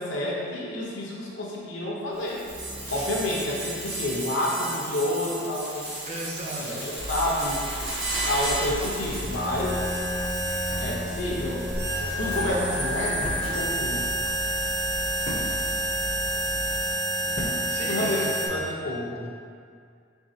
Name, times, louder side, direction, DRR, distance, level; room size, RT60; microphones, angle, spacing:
voice 1, 0.0-2.4 2.9-6.0 6.6-7.9 8.2-9.8 10.8-11.6 12.0-14.0 17.8-19.3, left 1 dB, 80° left, -4 dB, 0.9 m, -29 dB
sound 1, 2.2-18.5, right 1 dB, 85° right, 1.4 m, -30 dB
voice 2, 6.0-6.9 17.7-18.3 18.6-18.8, right 1 dB, 35° right, -2 dB, 0.5 m, -35 dB
sound 2, 6.9-17.0, equal, 65° right, 0.9 m, -38 dB
sound 3, 10.6-18.7, left 1 dB, 45° left, 0.6 m, -41 dB
4.6 x 3.6 x 2.8 m, 2.2 s
head